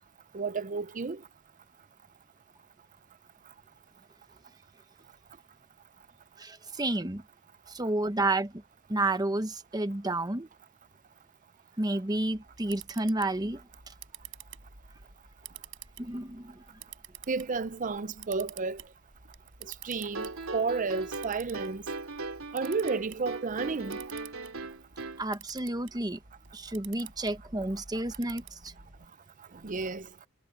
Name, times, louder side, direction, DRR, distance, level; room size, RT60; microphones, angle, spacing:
voice 1, 0.3-1.2 17.3-18.8 19.6-21.8 22.5-24.0 29.6-30.1, right 4 dB, 40° right, 0.6 m, -32 dB
voice 2, 6.4-7.2 7.7-8.5 8.9-10.5 11.8-13.6 16.0-16.6 25.2-26.2 26.5-28.7, right 2 dB, 20° right, 1.0 m, -31 dB
Camera, 12.3-29.1, right 8 dB, 65° right, 7.0 m, -50 dB
sound 1, 20.0-25.3, right 3 dB, 85° right, 2.9 m, -38 dB
head